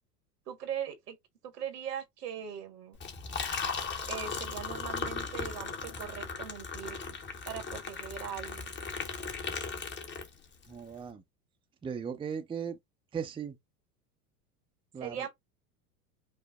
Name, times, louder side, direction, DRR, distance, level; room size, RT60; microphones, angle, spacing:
voice 1, 0.5-1.2 1.4-3.0 4.1-7.0 7.5-8.7 15.0-15.3, right 9 dB, 80° right, 1.6 m, -40 dB
Liquid, 2.9-10.6, left 5 dB, 25° left, 1.1 m, -37 dB
voice 2, 10.7-11.2 11.8-12.8 13.1-13.6 14.9-15.3, right 7 dB, 10° right, 0.6 m, -37 dB
5.3 x 2.1 x 3.5 m
hypercardioid pair, 95°, 47 cm